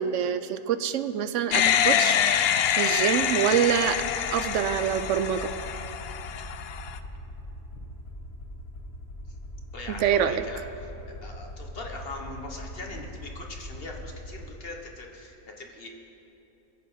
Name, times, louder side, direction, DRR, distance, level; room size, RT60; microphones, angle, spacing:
voice 1, 0.0-2.2 2.8-4.0 4.3-5.5 10.0-10.4, right 9 dB, 65° right, 12 dB, 0.8 m, -25 dB
sound 1, 1.5-7.0, left 9 dB, 65° left, 0.6 m, -26 dB
Aircraft, 3.8-14.5, equal, 90° left, 3.3 m, -41 dB
voice 2, 9.7-15.9, left 2 dB, 45° left, 1 dB, 1.3 m, -41 dB
21.5 x 7.7 x 5.6 m, 2.9 s
omnidirectional pair, 1.5 m